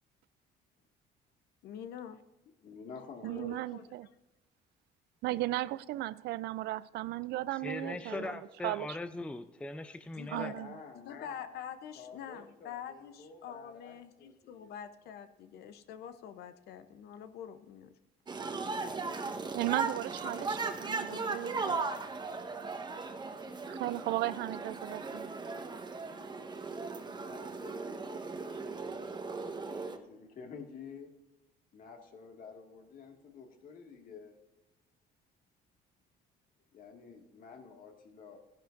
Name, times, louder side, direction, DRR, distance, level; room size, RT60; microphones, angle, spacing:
voice 1, 1.6-2.5 3.2-3.8 10.2-10.6 11.0-17.9 21.1-21.8, left 8 dB, 70° left, 0.7 m, -46 dB
voice 2, 2.6-3.8 7.7-8.3 10.4-11.4 11.9-14.8 26.9-28.9 29.9-31.1 31.7-34.4 36.7-38.4, left 5 dB, 55° left, 2.0 m, -50 dB
voice 3, 3.2-4.1 5.2-8.4 8.6-9.0 10.3-10.8 19.5-21.8 23.7-25.3, right 16 dB, 75° right, 0.4 m, -36 dB
voice 4, 7.6-10.5, left 2 dB, 5° left, 0.4 m, -40 dB
sound 1, 18.3-30.0, right 4 dB, 25° right, 1.1 m, -37 dB
15.5 x 10.5 x 2.6 m
cardioid pair, 110°, 17 cm